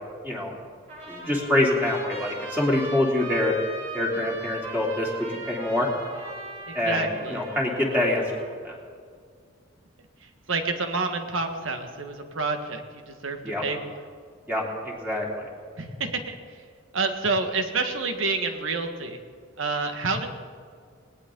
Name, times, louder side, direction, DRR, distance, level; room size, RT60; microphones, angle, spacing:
Trumpet, 0.9-8.5, right 2 dB, 35° right, 5.3 m, -39 dB
voice 1, 1.1-3.5 3.9-5.9 6.7-8.2 8.6-8.7 13.4-13.6 14.5-15.5, left 1 dB, 10° right, -3 dB, 3.1 m, -25 dB
voice 2, 6.7-7.4 10.2-13.9 15.8-16.4 16.9-19.2 19.6-20.3, right 3 dB, 75° right, 5 dB, 1.6 m, -28 dB
20.0 x 18.5 x 3.9 m, 2.1 s
head